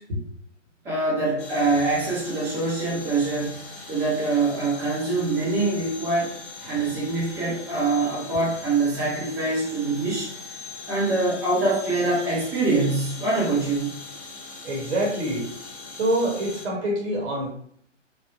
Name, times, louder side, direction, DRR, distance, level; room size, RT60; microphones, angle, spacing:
voice 1, 0.8-3.6 3.9-10.3 10.9-13.9, right 3 dB, 5° right, -8 dB, 0.5 m, -24 dB
sound 1, 1.4-16.7, left 3 dB, 45° left, 0.9 m, -41 dB
voice 2, 14.6-15.5 15.9-17.5, right 1 dB, 60° right, -2 dB, 1.0 m, -26 dB
3.2 x 2.1 x 2.4 m, 0.64 s
figure-of-eight pair, 120°, 38 cm